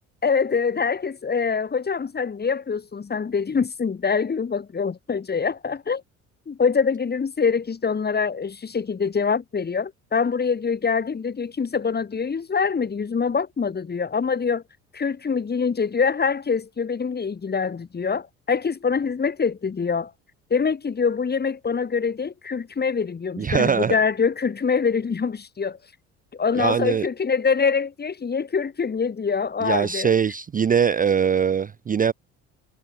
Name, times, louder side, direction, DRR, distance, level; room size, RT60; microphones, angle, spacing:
voice 1, 0.2-6.0 6.5-14.6 14.9-20.1 20.5-25.8 26.3-30.1, left 5 dB, 25° left, 1.8 m, -24 dB
voice 2, 23.4-24.0 26.6-27.1 29.6-32.1, right 7 dB, 25° right, 0.5 m, -21 dB
hypercardioid pair, 60°, 36 cm